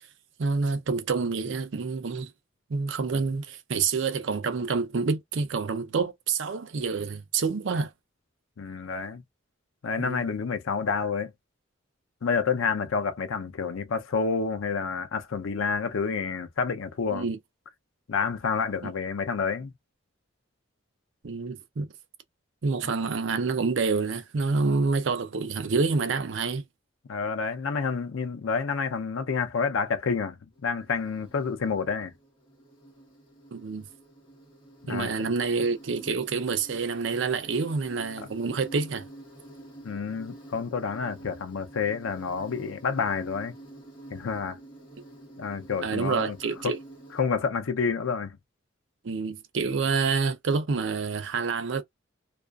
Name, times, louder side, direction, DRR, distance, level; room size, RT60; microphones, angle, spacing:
voice 1, 0.4-2.3 2.7-7.9 10.0-10.3 17.1-17.4 21.2-21.9 22.6-26.6 33.5-33.9 34.9-39.1 45.8-46.8 49.0-51.8, right 4 dB, 65° right, 0.5 m, -27 dB
voice 2, 8.6-9.2 9.8-11.3 12.2-17.3 18.1-19.7 27.1-32.1 34.9-35.1 39.8-43.5 44.1-44.6 45.4-46.4 46.6-46.7 47.1-48.4, left 5 dB, 85° left, 0.5 m, -29 dB
Insect, 30.5-47.2, right 1 dB, 25° left, 1.1 m, -48 dB
2.4 x 2.4 x 2.2 m
head